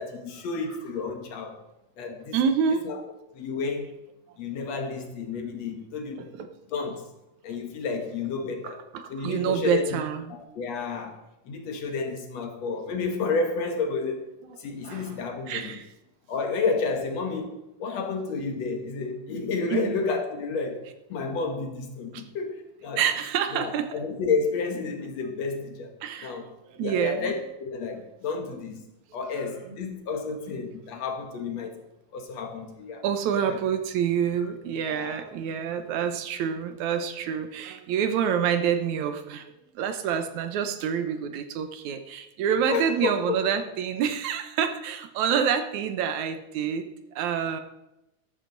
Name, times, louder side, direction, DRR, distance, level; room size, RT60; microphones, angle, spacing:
voice 1, 0.0-1.6 2.0-2.4 2.7-3.0 3.3-3.9 4.4-6.3 6.7-7.1 7.4-8.8 9.1-10.0 10.3-11.2 11.5-14.3 14.6-15.8 16.3-20.8 21.1-23.0 23.5-25.9 26.2-26.5 26.8-28.8 29.1-31.8 32.1-33.0 33.4-33.6 34.9-35.2 42.7-43.4, left 4 dB, 65° left, 5 dB, 2.4 m, -31 dB
voice 2, 2.3-2.9 6.2-6.5 8.6-10.4 14.4-15.1 15.5-15.9 19.7-20.0 22.1-22.2 23.0-23.9 26.0-26.4 26.7-27.3 33.0-39.5 39.8-46.9 47.2-47.6, right 8 dB, 75° right, 8 dB, 2.2 m, -27 dB
13.5 x 12.0 x 4.0 m, 0.92 s
omnidirectional pair, 3.5 m